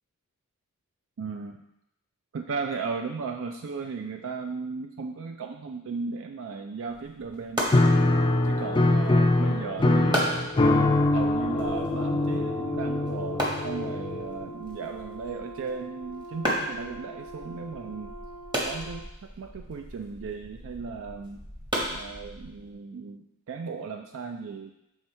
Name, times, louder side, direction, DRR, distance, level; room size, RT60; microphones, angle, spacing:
voice 1, 1.2-1.6 2.3-7.7 8.4-10.5 11.1-18.1 18.6-21.4 21.9-24.7, right 5 dB, 60° right, 4 dB, 0.4 m, -36 dB
sound 1, 6.9-22.7, equal, 20° right, 1.2 m, -36 dB
Piano, 7.7-14.5, left 2 dB, 20° left, 0.4 m, -23 dB
Brass instrument, 11.4-19.1, right 1 dB, 70° left, 0.6 m, -43 dB
7.2 x 3.5 x 4.3 m, 0.86 s
head